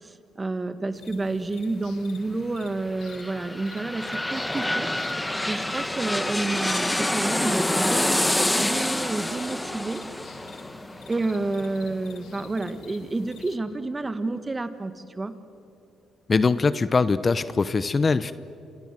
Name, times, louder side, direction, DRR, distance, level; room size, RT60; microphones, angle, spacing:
voice 1, 0.0-4.9 5.5-10.0 11.1-15.3, right 2 dB, 20° right, 10 dB, 1.8 m, -30 dB
sound 1, 0.9-13.6, left 7 dB, 85° left, 2.0 m, -49 dB
sound 2, 2.8-12.4 12.8-12.9, left 1 dB, 10° left, 1.1 m, -27 dB
voice 2, 16.3-18.3, left 4 dB, 35° left, 14 dB, 0.8 m, -22 dB
27.5 x 26.5 x 7.6 m, 2.6 s
cardioid pair, 90°, 0 cm